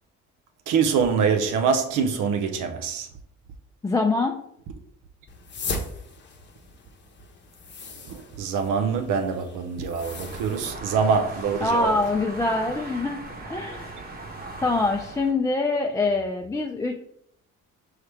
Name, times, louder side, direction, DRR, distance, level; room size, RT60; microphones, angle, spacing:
voice 1, 0.7-3.1 8.0-12.0, right 6 dB, 85° right, 0.5 m, -24 dB
voice 2, 3.8-4.3 11.6-13.2 13.5-13.9 14.6-16.9, left 3 dB, 10° left, 0.3 m, -24 dB
sound 1, 5.3-10.7, left 3 dB, 35° left, 0.8 m, -38 dB
sound 2, 10.0-15.3, right 2 dB, 30° right, 1.0 m, -39 dB
4.7 x 2.9 x 3.3 m
cardioid pair, 90°, 30 cm